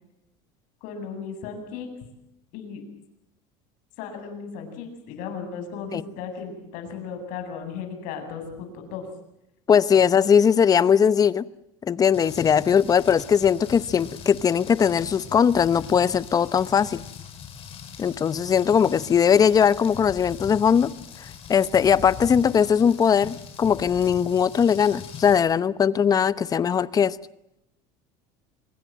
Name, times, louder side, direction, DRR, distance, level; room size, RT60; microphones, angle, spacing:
voice 1, 0.8-1.9 2.5-2.8 4.0-9.1, left 6 dB, 65° left, 6 dB, 8.0 m, -36 dB
voice 2, 9.7-11.5 11.8-17.0 18.0-20.9 21.5-27.2, left 7 dB, 25° left, 17 dB, 0.9 m, -20 dB
Rain, 12.1-25.4, left 7 dB, 40° left, 6.7 m, -41 dB
26.0 x 22.0 x 7.6 m, 0.83 s
cardioid pair, 140°, 15 cm